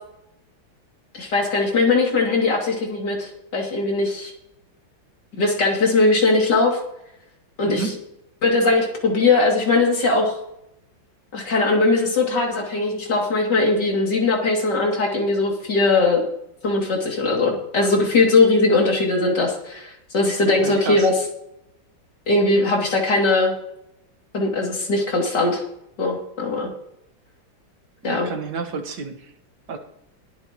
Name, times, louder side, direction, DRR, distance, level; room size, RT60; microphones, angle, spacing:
voice 1, 1.2-4.3 5.3-6.8 7.6-7.9 8.4-10.3 11.3-16.2 16.6-21.1 22.3-23.5 24.3-25.6 26.0-26.7 28.0-28.3, left 3 dB, 60° left, -1 dB, 3.3 m, -20 dB
voice 2, 7.7-8.0 20.6-21.1 28.0-29.2 29.7-29.8, right 5 dB, 60° right, 6 dB, 1.9 m, -30 dB
21.0 x 9.0 x 3.0 m, 0.78 s
omnidirectional pair, 2.1 m